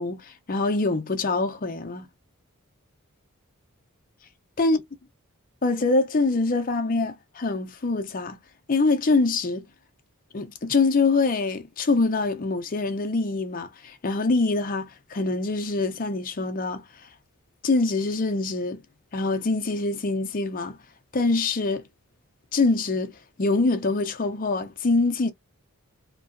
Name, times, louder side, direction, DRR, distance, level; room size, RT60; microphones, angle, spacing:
voice 1, 0.0-2.1 4.6-4.8 5.6-8.4 8.7-9.6 10.3-16.8 17.6-18.8 19.1-20.8 21.1-21.9 22.5-25.3, left 3 dB, 40° left, 0.6 m, -24 dB
2.9 x 2.7 x 2.6 m
head